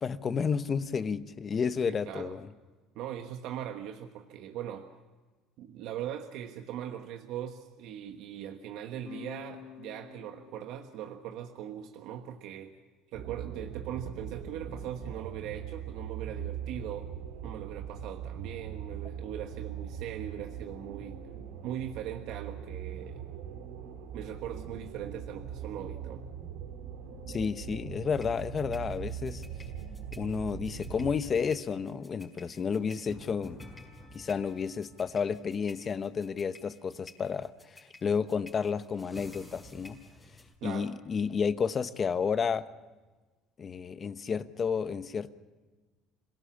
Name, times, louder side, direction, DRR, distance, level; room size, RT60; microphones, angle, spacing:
voice 1, 0.0-2.5 27.3-29.4 30.2-33.6 34.1-40.0 40.6-42.6 43.6-45.3, left 6 dB, 35° left, 1.0 m, -31 dB
voice 2, 1.9-2.3 2.9-4.9 5.6-12.8 13.1-17.1 17.4-21.2 21.6-23.2 24.1-26.2 40.6-40.9, right 10 dB, 70° right, 1.3 m, -40 dB
sound 1, 9.0-14.1, left 9 dB, 60° left, 2.6 m, -52 dB
sound 2, 13.1-31.2, right 8 dB, 85° right, 3.5 m, -41 dB
sound 3, 28.1-40.5, left 2 dB, 15° left, 5.5 m, -52 dB
26.5 x 18.0 x 7.2 m
cardioid pair, 115°, 0 cm